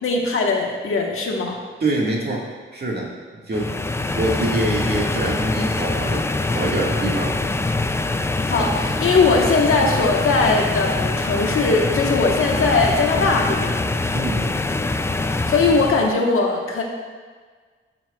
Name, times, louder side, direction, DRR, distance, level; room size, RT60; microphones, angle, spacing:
voice 1, 0.0-1.6 8.5-13.8 15.5-16.8, left 3 dB, 85° left, 0 dB, 1.3 m, -20 dB
voice 2, 1.8-2.5 2.7-3.1 3.5-6.2 6.5-7.4 14.1-14.5, right 2 dB, 50° right, -3 dB, 1.9 m, -25 dB
sound 1, 3.5-16.2, left 2 dB, 10° left, 0.3 m, -24 dB
14.0 x 7.6 x 2.4 m, 1.5 s
wide cardioid pair, 125°, 21 cm